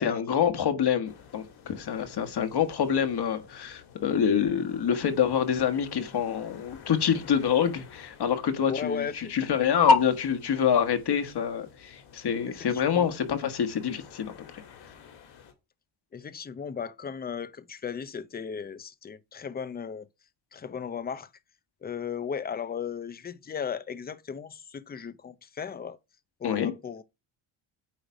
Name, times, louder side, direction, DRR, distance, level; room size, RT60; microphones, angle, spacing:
voice 1, 0.0-14.6 26.4-26.7, left 7 dB, 55° left, 1.5 m, -26 dB
sound 1, 1.0-15.5, left 7 dB, 75° left, 2.7 m, -52 dB
voice 2, 8.7-9.3 12.5-13.1 16.1-20.1 20.5-21.3 21.8-26.0 26.4-27.0, left 7 dB, 20° left, 0.6 m, -36 dB
9.1 x 3.2 x 5.2 m
cardioid pair, 95°, 48 cm